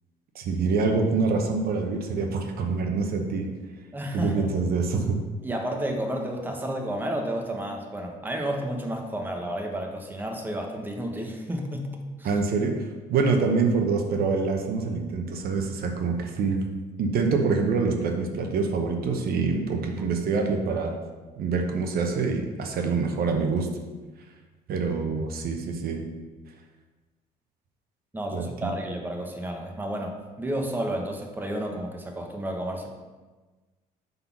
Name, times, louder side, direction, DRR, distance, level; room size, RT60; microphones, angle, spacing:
voice 1, 0.3-3.5 4.1-5.2 12.2-16.7 17.0-21.0 21.4-23.7 24.7-26.1 28.3-28.4, right 4 dB, 65° right, 3 dB, 0.8 m, -25 dB
voice 2, 3.9-4.5 5.4-11.9 12.2-12.3 20.0-20.1 28.1-32.9, right 1 dB, 10° right, 2 dB, 0.9 m, -31 dB
5.6 x 4.0 x 5.8 m, 1.3 s
cardioid pair, 110°, 17 cm